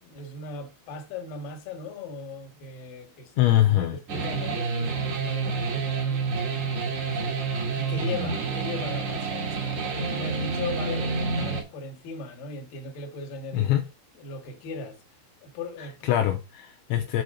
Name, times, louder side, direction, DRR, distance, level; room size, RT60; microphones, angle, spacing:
voice 1, 0.0-6.7 7.0-7.4 7.7-13.7 14.2-15.0 15.4-16.1, left 3 dB, 60° left, 2.4 m, -38 dB
voice 2, 3.4-3.9 13.5-13.8 16.1-17.2, left 13 dB, 80° left, 2.8 m, -23 dB
sound 1, 4.1-11.6, right 4 dB, 55° right, 2.2 m, -28 dB
7.8 x 4.1 x 6.4 m
omnidirectional pair, 5.9 m